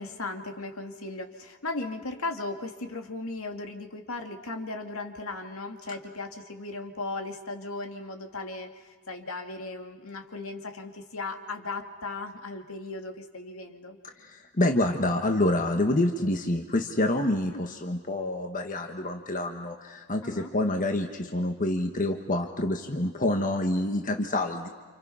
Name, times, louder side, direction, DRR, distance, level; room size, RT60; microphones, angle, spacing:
voice 1, 0.0-14.0 17.5-17.6 20.2-20.5, left 3 dB, 65° left, 5 dB, 2.3 m, -37 dB
voice 2, 14.2-24.7, left 1 dB, 35° left, 4 dB, 1.4 m, -27 dB
30.0 x 28.0 x 5.7 m, 1.4 s
head